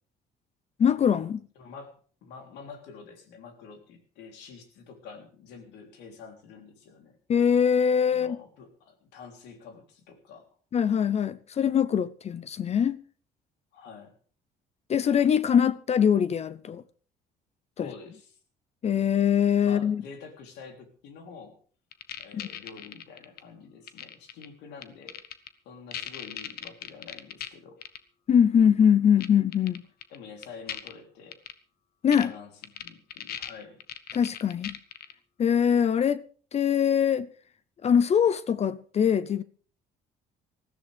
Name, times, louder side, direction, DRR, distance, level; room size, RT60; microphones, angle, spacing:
voice 1, 0.8-1.4 7.3-8.4 10.7-13.0 14.9-16.8 17.8-17.9 18.8-20.0 22.3-22.5 28.3-29.8 32.0-32.3 34.1-34.7 35.4-36.2 36.5-37.3 37.8-39.4, left 8 dB, 40° left, 0.6 m, -23 dB
voice 2, 1.6-7.2 8.1-10.5 13.7-14.2 17.8-18.4 19.6-21.6 22.2-25.2 25.7-27.8 30.1-31.4 32.2-33.8, left 5 dB, 85° left, 3.5 m, -47 dB
sound 1, 21.9-23.4 23.9-24.4 24.8-25.5 25.9-27.5 27.8-28.0 29.2-29.3 29.5-30.2 30.4-30.9 31.3-31.5 32.1-32.2 32.6-35.1, left 10 dB, 65° left, 1.2 m, -38 dB
19.5 x 14.0 x 3.5 m
cardioid pair, 110°, 17 cm